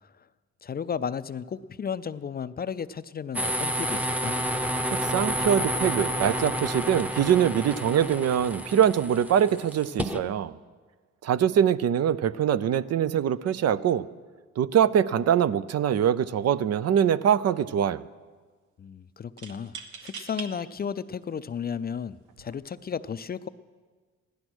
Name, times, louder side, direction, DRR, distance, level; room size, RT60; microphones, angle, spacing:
voice 1, 0.6-4.4 18.8-23.5, left 7 dB, 30° left, 15 dB, 0.4 m, -34 dB
sound 1, 3.3-10.2, equal, 5° right, 0.8 m, -30 dB
voice 2, 4.9-10.5 11.2-14.1 14.6-18.0, right 9 dB, 55° right, 16 dB, 0.5 m, -23 dB
sound 2, 16.2-16.5 16.8-17.4 19.4-20.5 21.2-21.3 22.2-22.5, right 5 dB, 75° right, 1.3 m, -42 dB
16.0 x 11.5 x 6.2 m, 1.4 s
cardioid pair, 90°, 30 cm